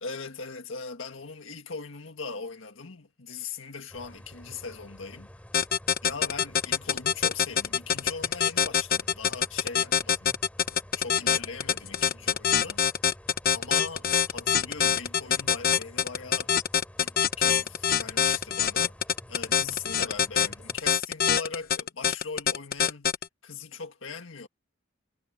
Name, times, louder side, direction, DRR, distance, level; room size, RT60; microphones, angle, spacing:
voice 1, 0.0-5.3 6.0-10.3 11.0-12.8 13.5-16.5 17.0-19.0 19.3-23.1 23.4-24.5, left 5 dB, 75° left, 1.7 m, -40 dB
sound 1, 3.9-20.8, equal, 5° left, 3.0 m, -50 dB
sound 2, 5.5-23.3, left 8 dB, 50° left, 1.0 m, -24 dB
head